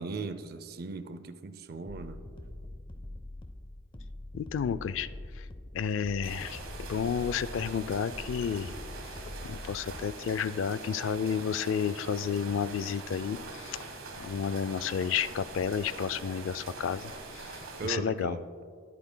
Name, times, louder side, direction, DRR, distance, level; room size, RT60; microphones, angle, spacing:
voice 1, 0.0-2.2 17.8-18.7, right 4 dB, 45° right, 11 dB, 0.5 m, -38 dB
sound 1, 1.9-10.2, left 1 dB, 25° left, 0.6 m, -44 dB
voice 2, 4.3-5.1 5.4-5.5 5.7-8.7 9.5-13.9 14.2-18.4, left 7 dB, 70° left, 15 dB, 0.3 m, -31 dB
sound 2, 6.2-17.9, right 3 dB, 85° right, 1.5 m, -43 dB
20.5 x 8.5 x 2.2 m, 2.1 s
head